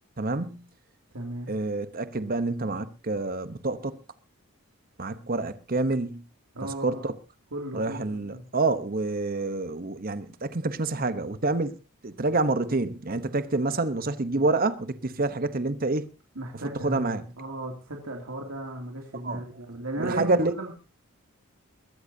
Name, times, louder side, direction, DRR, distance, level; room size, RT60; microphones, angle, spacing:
voice 1, 0.2-0.7 1.5-4.0 5.0-6.2 6.6-7.1 7.7-11.8 12.0-16.1 16.8-17.2 19.2-19.4 20.0-20.5, right 3 dB, 40° right, 0.9 m, -27 dB
voice 2, 1.1-1.5 6.5-7.1 7.5-8.4 16.3-20.7, right 1 dB, 80° right, 2.5 m, -36 dB
21.5 x 13.5 x 2.8 m
head